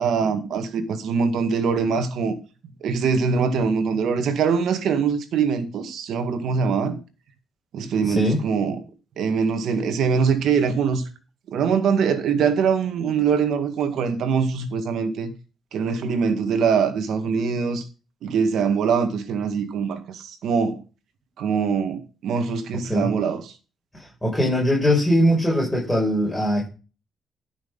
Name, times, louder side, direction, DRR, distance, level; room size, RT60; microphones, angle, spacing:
voice 1, 0.0-2.4 2.8-7.0 7.7-8.8 9.2-11.0 11.5-15.3 15.7-17.8 18.2-20.8 21.4-23.5, right 6 dB, 75° right, 1.8 m, -23 dB
voice 2, 8.0-8.4 22.9-23.1 23.9-26.7, equal, 10° left, 5.9 m, -21 dB
11.5 x 6.1 x 5.5 m
cardioid pair, 90°, 0 cm